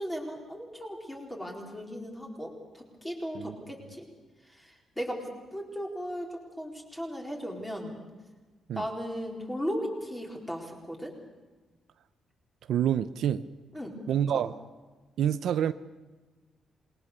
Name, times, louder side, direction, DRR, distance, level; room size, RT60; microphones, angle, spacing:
voice 1, 0.0-4.0 4.4-8.0 8.7-11.1 13.7-14.0, equal, 5° left, 4.3 m, -37 dB
voice 2, 12.7-13.4 14.1-14.5 15.2-15.7, right 9 dB, 65° right, 0.7 m, -27 dB
27.5 x 21.0 x 6.8 m
cardioid pair, 175°, 0 cm